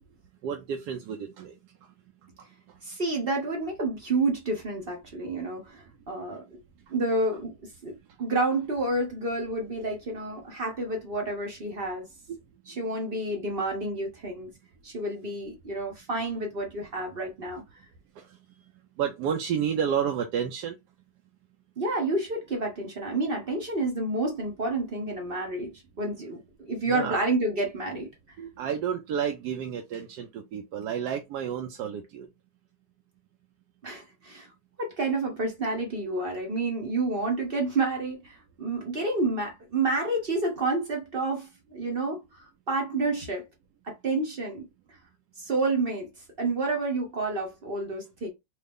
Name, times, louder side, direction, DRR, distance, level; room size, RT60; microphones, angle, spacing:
voice 1, 0.4-1.7 2.7-2.8 6.9-7.0 12.3-12.4 12.7-12.8 18.2-18.4 19.0-20.8 26.8-27.2 28.4-32.3, right 8 dB, 80° right, 1.2 m, -31 dB
voice 2, 2.8-6.4 6.9-7.5 7.8-12.1 12.7-14.5 14.8-17.6 21.8-25.7 26.0-26.4 26.7-28.1 33.8-34.5 34.8-42.2 42.7-43.4 43.8-44.7 45.4-46.1 46.4-48.3, right 2 dB, 45° right, 0.8 m, -29 dB
3.1 x 2.4 x 3.4 m
omnidirectional pair, 1.7 m